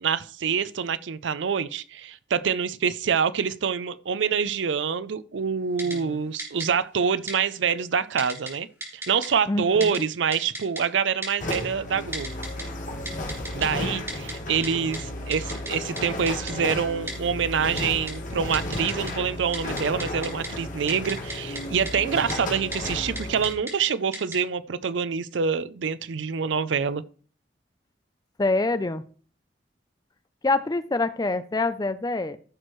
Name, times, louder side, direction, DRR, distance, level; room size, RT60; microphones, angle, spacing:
voice 1, 0.0-8.7 8.9-12.3 13.5-27.0, right 6 dB, 75° right, 0.5 m, -26 dB
voice 2, 5.8-6.2 9.5-10.0 28.4-29.0 30.4-32.4, left 2 dB, 20° left, 0.4 m, -26 dB
Typing, 5.8-6.0 6.4-6.7 7.3-7.4 8.2-8.5 8.8-9.3 9.8-10.0 10.3-10.8 11.2-11.6 12.1-12.6 13.1-13.7 14.1-14.3 14.6-14.7 14.9-15.0 15.3-15.7 16.0-16.1 16.3-16.5 17.1-17.2 17.8-18.1 18.5-19.1 19.4-20.5 20.9-21.6 21.9-22.0 22.3-22.4 22.7-22.9 23.2-23.7 24.1-24.4, right 1 dB, 15° right, 2.3 m, -34 dB
sound 1, 11.4-23.5, left 1 dB, 45° left, 1.6 m, -33 dB
14.5 x 6.4 x 3.1 m
head